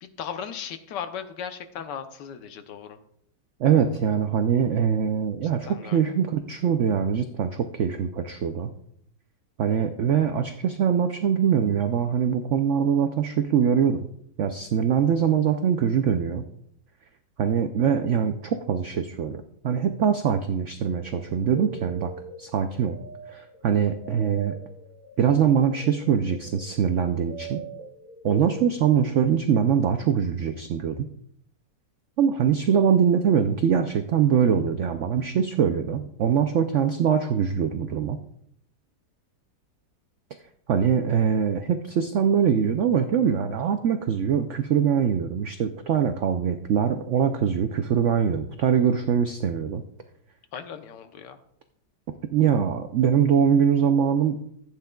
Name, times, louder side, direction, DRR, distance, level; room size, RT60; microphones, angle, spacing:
voice 1, 0.0-3.0 5.7-6.0 50.5-51.4, left 8 dB, 75° left, 9 dB, 1.4 m, -37 dB
voice 2, 3.6-8.7 9.6-14.1 14.4-16.5 17.4-22.1 22.4-22.9 23.3-24.5 25.2-27.6 28.2-31.1 32.2-38.2 40.7-49.8 52.3-54.4, right 8 dB, 90° right, 7 dB, 0.6 m, -23 dB
sound 1, 20.9-29.2, right 3 dB, 25° left, 3.9 m, -43 dB
15.0 x 8.7 x 2.3 m, 0.69 s
omnidirectional pair, 1.9 m